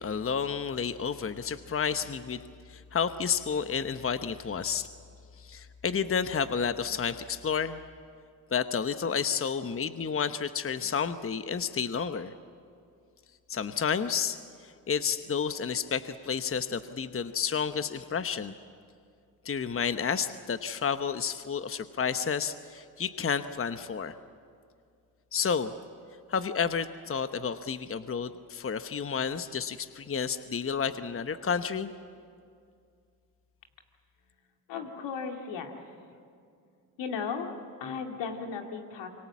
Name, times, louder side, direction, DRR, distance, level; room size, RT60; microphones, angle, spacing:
voice 1, 0.0-4.9 5.4-7.8 8.5-12.3 13.5-18.5 19.4-24.2 25.3-25.7 26.3-31.9, left 6 dB, 30° left, 10 dB, 1.0 m, -31 dB
voice 2, 34.7-35.8 37.0-37.5 37.8-39.1, left 5 dB, 75° left, 3 dB, 2.5 m, -35 dB
27.0 x 24.5 x 7.4 m, 2.3 s
supercardioid pair, 50°, 44 cm